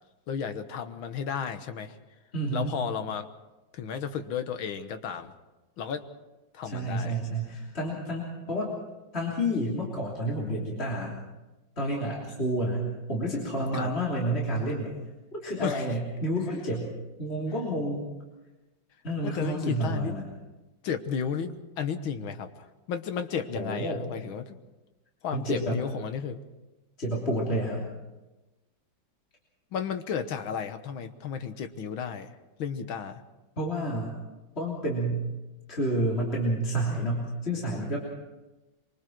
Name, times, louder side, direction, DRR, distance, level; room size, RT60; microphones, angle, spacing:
voice 1, 0.3-2.0 2.5-3.3 3.7-5.3 5.8-6.1 6.5-7.2 13.7-13.9 15.6-15.9 19.2-20.1 20.8-24.6 25.2-26.4 29.7-32.3 32.6-33.2, left 7 dB, 90° left, 8 dB, 2.0 m, -33 dB
voice 2, 2.3-2.7 6.6-8.7 9.1-11.2 11.8-14.9 15.3-16.9 17.2-18.1 19.0-20.3 23.5-24.0 25.3-25.8 27.0-27.9 33.6-34.1 34.5-35.3 35.7-38.0, right 1 dB, 30° left, -4 dB, 3.5 m, -29 dB
24.5 x 24.0 x 4.6 m, 1.1 s
omnidirectional pair, 2.1 m